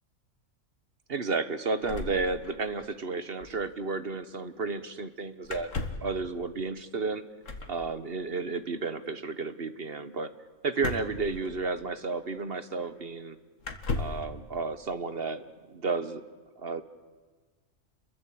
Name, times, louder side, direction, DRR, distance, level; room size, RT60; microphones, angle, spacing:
voice 1, 1.1-5.7 6.0-7.2 7.7-10.3 10.6-13.4 14.0-16.2 16.6-16.8, right 4 dB, 45° right, 12 dB, 1.5 m, -32 dB
sound 1, 1.8-2.9 3.1-3.2 3.4-3.6 5.4-6.2 7.4-7.8 10.8-11.9 12.8-12.9 13.6-14.3, left 3 dB, 65° left, 2.2 m, -36 dB
30.0 x 22.5 x 8.7 m, 1.4 s
omnidirectional pair, 1.4 m